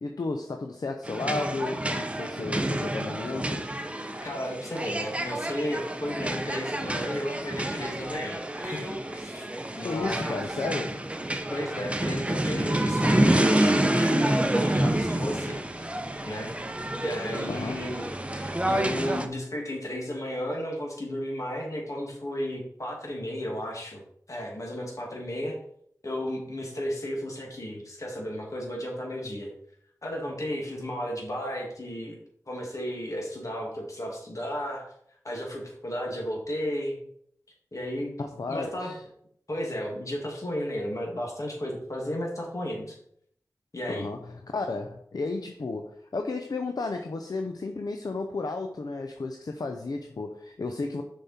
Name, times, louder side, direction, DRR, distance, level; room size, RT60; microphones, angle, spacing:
voice 1, 0.0-3.7 9.8-11.1 17.5-17.8 38.2-39.0 43.9-51.0, left 3 dB, 75° left, 4 dB, 0.7 m, -33 dB
sound 1, 1.0-19.3, right 1 dB, 20° right, 0.7 m, -28 dB
voice 2, 4.2-9.5 9.7-10.4 11.5-15.9 16.2-16.5 16.8-24.0 24.3-25.6 26.0-29.5 30.0-32.2 32.5-34.9 35.2-37.0 37.7-38.1 38.5-38.9 39.5-43.0 43.7-44.1, equal, 55° left, -1 dB, 2.4 m, -34 dB
6.9 x 5.4 x 4.3 m, 0.68 s
wide cardioid pair, 60°, 7 cm